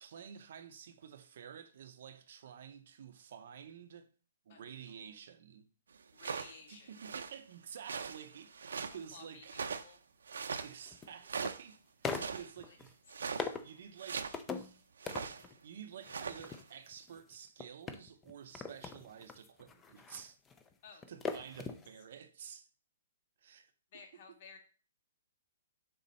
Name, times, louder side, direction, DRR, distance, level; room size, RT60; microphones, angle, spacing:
voice 1, 0.0-4.1 4.4-5.7 6.7-9.6 10.5-13.0 13.6-14.8 15.2-20.4 21.1-22.7 23.4-23.7, right 8 dB, 45° right, 0.6 m, -51 dB
voice 2, 4.5-5.1 6.1-7.2 9.1-10.0 12.2-12.8 20.8-21.5 23.9-24.6, left 5 dB, 35° left, 1.6 m, -56 dB
sound 1, 6.2-6.5 6.9-7.4 7.8-9.0 9.5-10.0 10.3-10.7 11.2-11.7 12.1-12.5 13.1-13.5 14.0-14.4 15.0-15.4 15.9-16.6, right 5 dB, 90° right, 0.7 m, -41 dB
sound 2, 9.1-9.2 10.6-11.5 12.0-12.9 13.4-13.8 14.3-14.8 15.1-15.6 16.0-21.9 22.2-22.3, left 5 dB, 10° left, 0.4 m, -42 dB
6.8 x 3.9 x 5.3 m
hypercardioid pair, 175°, 0 cm